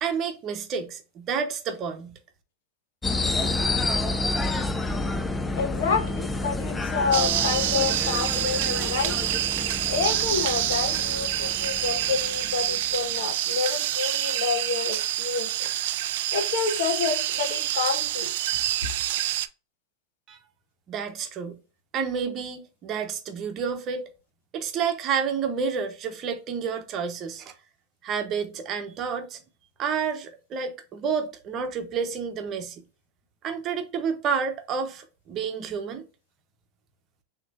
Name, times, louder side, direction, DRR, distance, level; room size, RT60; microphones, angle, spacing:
voice 1, 0.0-2.2 20.3-20.4 20.9-21.6 21.9-24.0 24.5-27.5 28.0-29.4 29.8-32.8 33.4-36.0, right 6 dB, 40° right, 1.0 m, -30 dB
sound 1, 3.0-12.9, left 2 dB, 15° left, 0.5 m, -29 dB
voice 2, 5.5-9.2 9.6-15.7 16.3-18.3, left 5 dB, 70° left, 1.5 m, -28 dB
sound 2, 7.1-19.5, right 13 dB, 65° right, 0.4 m, -27 dB
6.4 x 3.0 x 2.6 m
hypercardioid pair, 105°, 0 cm